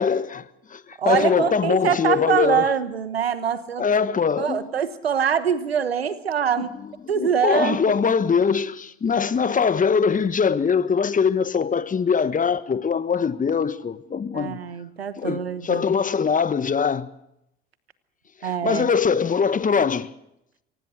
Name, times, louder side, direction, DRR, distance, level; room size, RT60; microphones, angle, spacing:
voice 1, 0.0-2.7 3.8-4.7 6.6-14.6 15.2-17.1 18.4-20.1, left 6 dB, 25° left, 1.3 m, -22 dB
voice 2, 1.0-3.8 4.4-6.7 7.1-7.8 14.3-15.9 18.4-18.9, right 8 dB, 85° right, 1.2 m, -24 dB
24.0 x 18.5 x 6.3 m
figure-of-eight pair, 60°, 30 cm